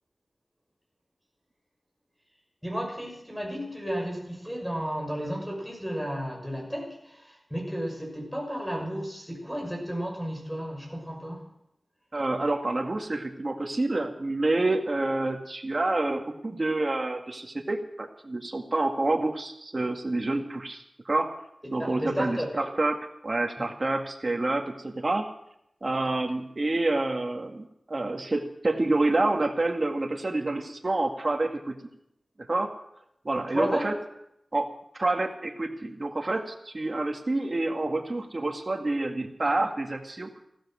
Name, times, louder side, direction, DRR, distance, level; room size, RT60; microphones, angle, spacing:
voice 1, 2.6-11.4 21.8-22.5 33.5-33.9, equal, ahead, 1 dB, 6.1 m, -33 dB
voice 2, 12.1-21.3 21.7-23.0 23.2-25.3 25.8-31.8 32.5-32.7 33.2-34.0 34.5-40.3, right 2 dB, 45° right, 3 dB, 1.9 m, -28 dB
15.5 x 13.0 x 6.4 m, 0.77 s
wide cardioid pair, 80°, 0 cm